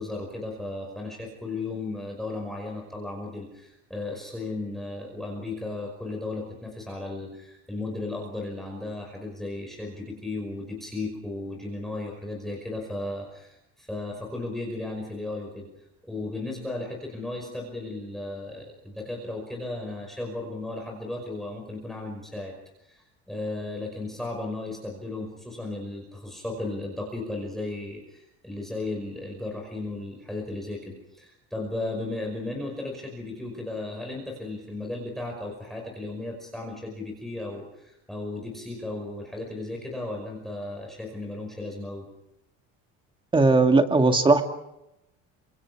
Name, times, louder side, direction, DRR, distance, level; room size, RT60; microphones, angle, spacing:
voice 1, 0.0-15.7 16.0-22.5 22.8-42.1, left 2 dB, ahead, 1 dB, 5.4 m, -35 dB
voice 2, 43.3-44.4, right 3 dB, 15° right, 5 dB, 2.3 m, -18 dB
29.5 x 26.5 x 4.8 m, 0.86 s
cardioid pair, 135°, 31 cm